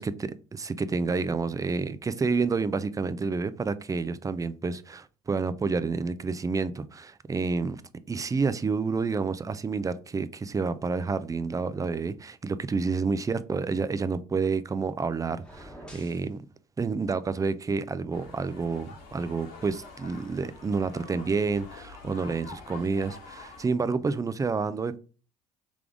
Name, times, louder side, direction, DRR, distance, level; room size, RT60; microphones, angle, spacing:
voice 1, 0.0-7.8 8.1-16.4 16.8-25.0, right 4 dB, 20° right, 0.4 m, -29 dB
sound 1, 15.3-16.3, equal, 5° left, 1.2 m, -47 dB
sound 2, 18.1-23.7, left 4 dB, 75° left, 1.7 m, -47 dB
3.7 x 3.4 x 3.6 m
supercardioid pair, 75°, 18 cm